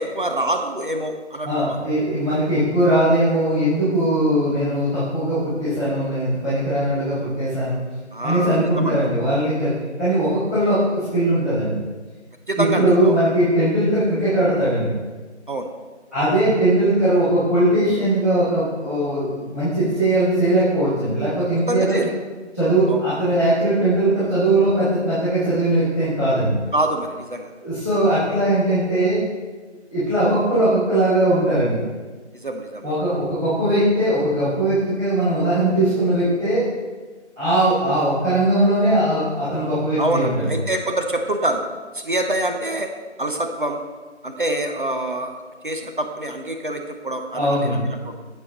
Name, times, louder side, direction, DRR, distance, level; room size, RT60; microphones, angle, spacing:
voice 1, 0.0-1.8 8.1-9.0 12.5-13.2 15.5-15.7 21.7-22.1 22.9-23.0 26.7-27.5 32.3-32.9 40.0-41.6 41.9-42.9 43.2-43.8 44.2-45.4 45.6-48.2, right 1 dB, 45° right, 4 dB, 0.8 m, -25 dB
voice 2, 1.4-7.8 8.2-9.7 10.0-11.8 12.6-15.0 16.1-22.0 22.5-26.6 27.6-29.2 29.9-31.8 32.8-36.7 37.4-40.6 47.3-47.9, right 1 dB, 15° right, -18 dB, 2.7 m, -20 dB
8.5 x 8.5 x 3.9 m, 1.4 s
figure-of-eight pair, 170°, 35 cm